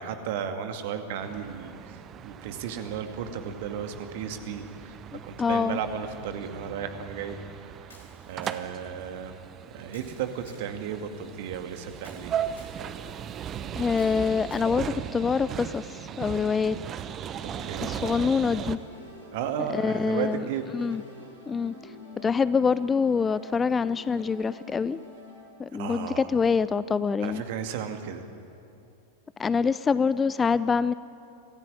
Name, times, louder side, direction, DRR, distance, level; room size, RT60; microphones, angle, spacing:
voice 1, 0.0-5.0 5.2-7.4 8.3-9.4 9.7-12.3 17.4-18.0 19.3-20.6 25.7-26.3 27.2-28.2, right 8 dB, 50° right, 7 dB, 2.1 m, -34 dB
sound 1, 1.2-18.8, right 9 dB, 30° right, 1.0 m, -38 dB
voice 2, 5.1-5.8 13.8-15.9 16.2-16.8 17.8-18.8 19.7-20.5 20.7-21.0 21.5-21.7 22.2-25.0 25.6-27.4 29.4-30.9, left 5 dB, 15° left, 17 dB, 0.5 m, -25 dB
Camera, 7.9-8.8 9.9-10.7 12.0-12.8 13.9-14.7, left 3 dB, 70° left, 4.2 m, -54 dB
sound 2, 17.4-25.4, left 2 dB, 85° right, 6.8 m, -47 dB
24.0 x 15.5 x 9.9 m, 2.6 s
figure-of-eight pair, 90°, 0 cm